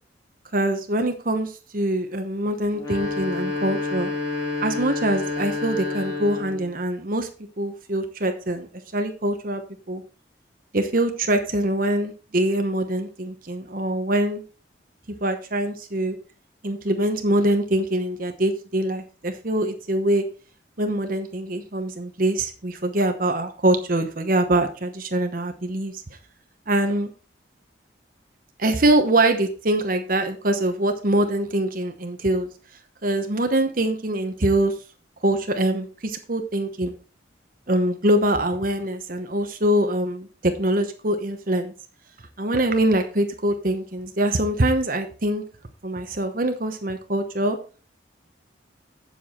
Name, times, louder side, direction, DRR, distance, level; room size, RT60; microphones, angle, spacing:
voice 1, 0.5-4.1 4.6-7.3 7.6-9.6 9.9-10.0 10.7-14.4 15.2-16.2 16.6-20.2 20.8-26.0 26.7-27.1 28.6-32.5 33.0-34.7 35.2-36.9 37.7-41.7 42.4-45.4 45.8-47.6, right 1 dB, 45° right, 6 dB, 1.0 m, -23 dB
sound 1, 2.7-6.7, left 4 dB, 15° left, 2.6 m, -29 dB
8.2 x 7.3 x 4.3 m, 0.36 s
head